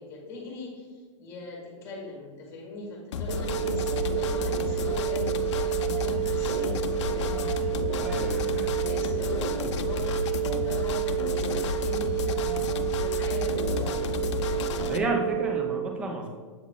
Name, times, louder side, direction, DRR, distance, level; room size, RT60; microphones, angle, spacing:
voice 1, 0.0-14.0, left 2 dB, 15° left, -1 dB, 1.4 m, -41 dB
sound 1, 3.1-15.0, left 5 dB, 60° left, 0.5 m, -32 dB
sound 2, 3.3-15.7, right 12 dB, 40° right, 0.8 m, -30 dB
voice 2, 8.0-8.8 14.9-16.3, right 2 dB, 5° right, 2 dB, 0.3 m, -31 dB
7.2 x 3.7 x 3.6 m, 1.5 s
hypercardioid pair, 165°, 17 cm